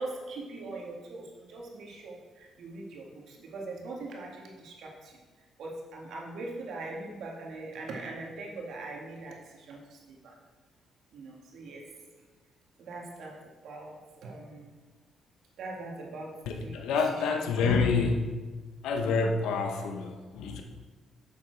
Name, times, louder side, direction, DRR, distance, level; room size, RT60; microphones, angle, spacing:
voice 1, 0.0-5.2 5.6-10.3 11.1-11.8 12.8-13.3 13.6-14.0 14.2-14.7 15.6-16.3 16.6-16.8 17.3-17.5, right 2 dB, 70° right, -1 dB, 1.9 m, -41 dB
voice 2, 16.5-18.4 18.8-20.6, left 4 dB, 85° left, 4 dB, 1.0 m, -28 dB
7.5 x 7.2 x 4.6 m, 1.4 s
cardioid pair, 90°, 0 cm